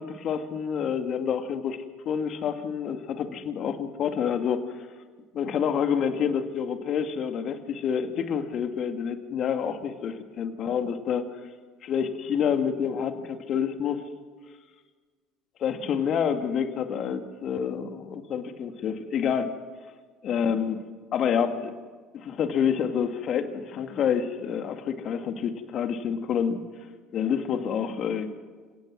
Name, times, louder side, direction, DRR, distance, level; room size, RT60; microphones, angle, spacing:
voice 1, 0.0-1.8 2.1-4.6 5.3-11.3 11.8-14.0 15.6-19.5 20.2-20.8 21.1-21.7 22.1-26.6 27.1-28.3, left 7 dB, 50° left, 7 dB, 2.3 m, -28 dB
29.0 x 17.5 x 6.2 m, 1.5 s
hypercardioid pair, 70°, 0 cm